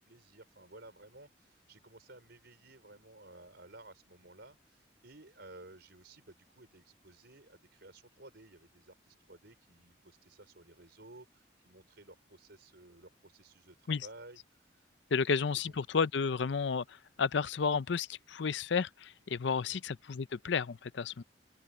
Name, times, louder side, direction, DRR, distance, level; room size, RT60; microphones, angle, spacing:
voice 1, 0.0-15.8 19.7-19.8, right 2 dB, 60° right, 4.9 m, -55 dB
voice 2, 15.1-21.2, left 5 dB, 70° left, 0.5 m, -32 dB
open air
head